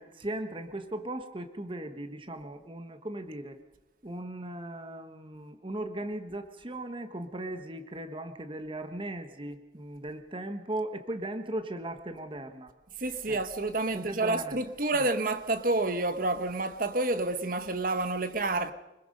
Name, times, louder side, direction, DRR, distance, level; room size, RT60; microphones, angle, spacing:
voice 1, 0.0-3.6 4.0-12.7 13.2-13.4 13.9-14.6 14.9-15.0, right 1 dB, 30° right, 1.3 m, -38 dB
voice 2, 13.0-18.7, right 2 dB, 50° right, 1.2 m, -29 dB
24.5 x 21.0 x 5.3 m
head